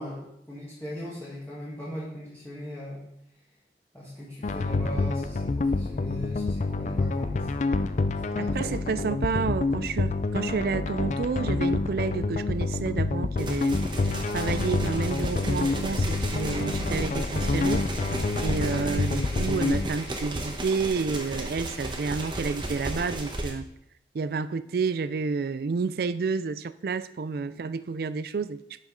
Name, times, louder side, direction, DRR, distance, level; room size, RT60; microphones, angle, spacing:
voice 1, 0.0-3.1 3.9-7.5 8.2-9.0 27.4-27.5, left 1 dB, 10° left, -7 dB, 1.5 m, -39 dB
sound 1, 4.4-19.9, left 3 dB, 40° left, 0.4 m, -28 dB
voice 2, 8.4-13.8 14.3-17.8 18.4-23.6 24.1-28.8, right 4 dB, 55° right, 14 dB, 0.4 m, -30 dB
sound 2, 13.4-23.5, right 1 dB, 25° right, 1.0 m, -34 dB
11.0 x 5.1 x 3.8 m, 0.78 s
head